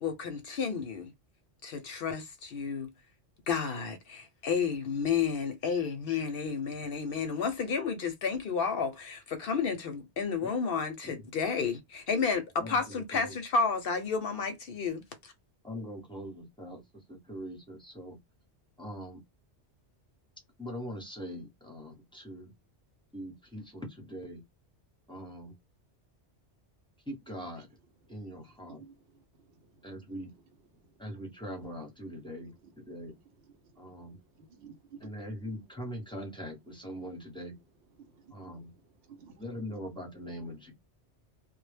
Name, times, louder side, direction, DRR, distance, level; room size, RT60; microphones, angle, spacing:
voice 1, 0.0-1.1 1.6-2.9 3.5-15.3, left 5 dB, 60° left, 0.7 m, -31 dB
voice 2, 12.6-13.3 15.6-18.2 18.8-19.2 20.6-22.5 23.1-24.4 25.1-25.5 27.1-27.7 28.1-28.8 29.8-30.3 31.0-33.1 33.8-34.2 35.0-37.5 38.3-38.7 39.4-40.7, equal, 5° left, 0.7 m, -42 dB
voice 3, 34.5-35.1 38.0-38.5 39.1-39.6, right 6 dB, 75° right, 0.8 m, -52 dB
2.1 x 2.0 x 3.2 m
omnidirectional pair, 1.2 m